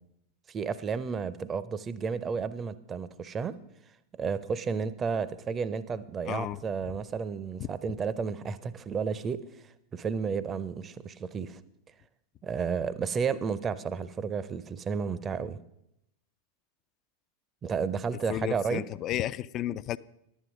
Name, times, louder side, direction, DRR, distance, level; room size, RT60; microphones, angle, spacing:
voice 1, 0.5-3.6 4.1-11.6 12.4-15.6 17.6-18.8, right 6 dB, 25° right, 16 dB, 0.6 m, -32 dB
voice 2, 6.3-6.6 6.8-6.9 7.6-7.7 18.3-20.0, left 13 dB, 35° left, 18 dB, 0.3 m, -33 dB
11.0 x 9.2 x 5.2 m, 0.82 s
figure-of-eight pair, 90°, 0 cm